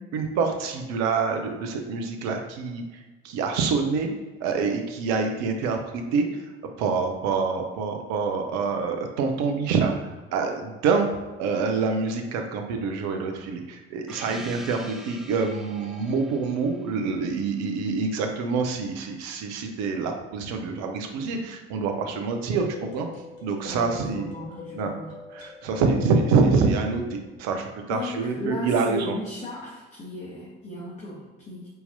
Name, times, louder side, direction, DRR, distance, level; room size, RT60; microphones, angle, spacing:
voice 1, 0.1-2.8 3.2-4.1 4.4-6.2 6.8-11.1 11.4-22.7 22.9-23.1 23.4-24.3 24.7-24.9 25.3-29.2, right 4 dB, 55° right, 4 dB, 0.7 m, -26 dB
Gong, 14.1-18.4, right 1 dB, ahead, 0.5 m, -45 dB
sound 1, 22.5-27.6, left 5 dB, 45° left, 1.4 m, -44 dB
voice 2, 23.6-25.1 27.9-31.7, left 2 dB, 25° left, -6 dB, 1.1 m, -36 dB
4.2 x 3.8 x 2.6 m, 1.2 s
figure-of-eight pair, 55°, 31 cm